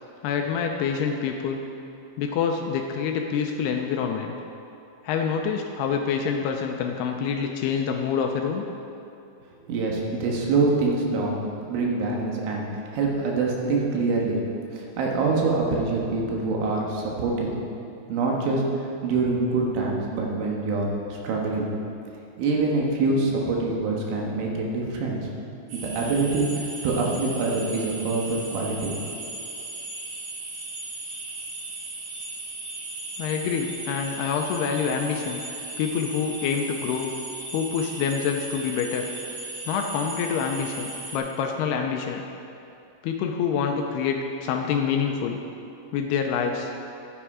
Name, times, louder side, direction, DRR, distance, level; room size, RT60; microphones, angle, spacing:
voice 1, 0.2-1.6 2.2-4.4 5.0-8.6 33.2-35.4 35.8-37.1 37.5-39.1 39.7-42.2 43.0-45.4 45.9-46.7, left 6 dB, 85° left, 3 dB, 2.4 m, -26 dB
voice 2, 9.7-11.4 11.7-12.7 12.9-14.4 14.7-17.5 18.1-21.7 22.4-25.3 25.7-28.9, right 3 dB, 85° right, -1 dB, 3.9 m, -25 dB
sound 1, 25.7-41.2, right 2 dB, 60° right, 3.5 m, -37 dB
13.0 x 8.9 x 4.9 m, 2.7 s
omnidirectional pair, 5.3 m